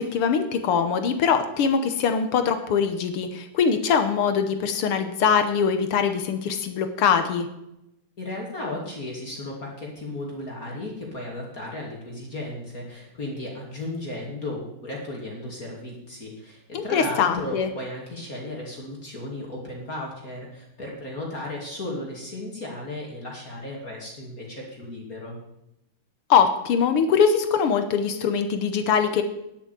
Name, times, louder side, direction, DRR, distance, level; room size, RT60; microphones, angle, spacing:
voice 1, 0.0-7.5 16.7-17.7 26.3-29.2, left 6 dB, 60° left, 8 dB, 1.6 m, -22 dB
voice 2, 8.2-25.4, left 1 dB, 30° left, -2 dB, 2.5 m, -35 dB
10.0 x 8.5 x 8.2 m, 0.85 s
omnidirectional pair, 3.3 m